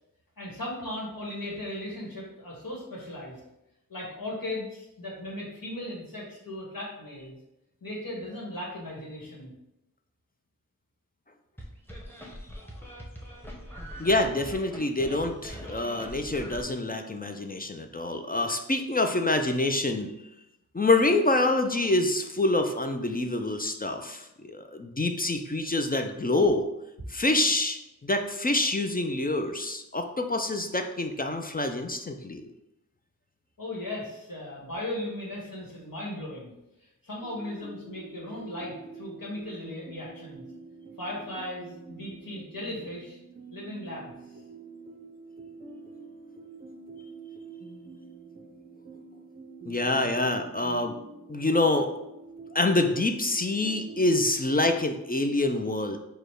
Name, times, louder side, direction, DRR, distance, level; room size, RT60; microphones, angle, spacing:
voice 1, 0.4-3.4 3.9-7.4 7.8-9.5 33.6-36.5 36.8-40.4 41.0-43.2 43.5-44.1, left 1 dB, 80° left, -4 dB, 1.4 m, -37 dB
sound 1, 11.6-16.6, equal, 5° left, 0.9 m, -42 dB
voice 2, 14.0-20.1 20.7-26.7 27.1-32.4 49.7-50.9 51.3-51.9 52.5-56.0, left 2 dB, 25° left, 6 dB, 0.4 m, -26 dB
sound 2, 37.2-54.7, right 4 dB, 25° right, 0.5 m, -46 dB
4.9 x 2.1 x 4.6 m, 0.87 s
wide cardioid pair, 50°, 34 cm